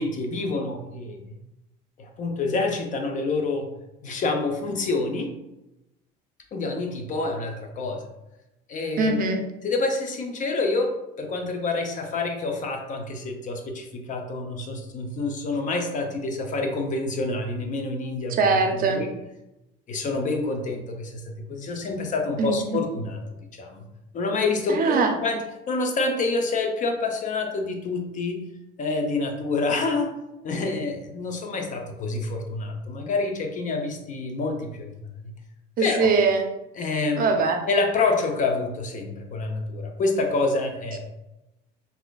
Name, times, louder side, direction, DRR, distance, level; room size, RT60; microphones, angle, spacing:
voice 1, 0.0-1.4 2.0-3.7 4.0-5.3 6.5-8.1 8.7-9.2 9.6-19.1 19.9-23.2 23.5-23.9 24.1-28.4 28.8-30.1 30.4-35.3 35.8-36.1 36.8-37.3 37.7-41.0, left 3 dB, 40° left, 4 dB, 0.6 m, -27 dB
voice 2, 9.0-9.4 18.3-19.0 22.4-22.6 24.7-25.1 35.8-36.5 37.2-37.6, right 4 dB, 45° right, 5 dB, 0.5 m, -22 dB
4.1 x 2.6 x 2.3 m, 0.93 s
supercardioid pair, 100°, 20 cm